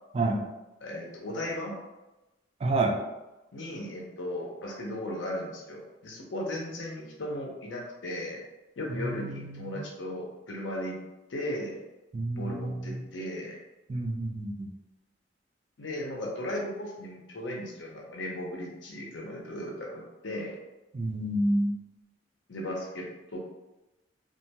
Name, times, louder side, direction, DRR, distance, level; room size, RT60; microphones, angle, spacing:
voice 1, 0.1-0.4 2.6-3.0 8.9-9.8 12.1-13.0 13.9-14.7 20.9-21.7, right 2 dB, 35° right, 1 dB, 0.3 m, -29 dB
voice 2, 0.8-1.8 3.5-8.4 8.8-11.0 11.3-11.8 12.3-13.6 15.8-20.6 22.5-23.4, left 1 dB, 85° left, -1 dB, 0.6 m, -36 dB
2.4 x 2.2 x 2.8 m, 1.0 s
head